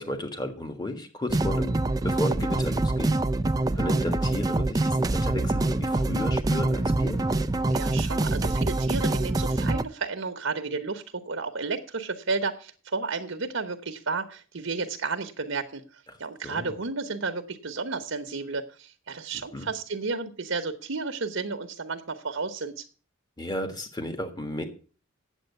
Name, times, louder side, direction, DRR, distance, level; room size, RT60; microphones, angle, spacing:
voice 1, 0.0-3.1 3.7-7.2 16.1-16.2 16.4-16.7 19.3-19.7 23.4-24.6, left 1 dB, 20° left, 6 dB, 1.5 m, -33 dB
sound 1, 1.3-9.8, right 2 dB, 20° right, 0.4 m, -25 dB
voice 2, 7.7-22.8, right 4 dB, 70° right, 6 dB, 1.0 m, -32 dB
9.1 x 7.8 x 6.6 m, 0.39 s
head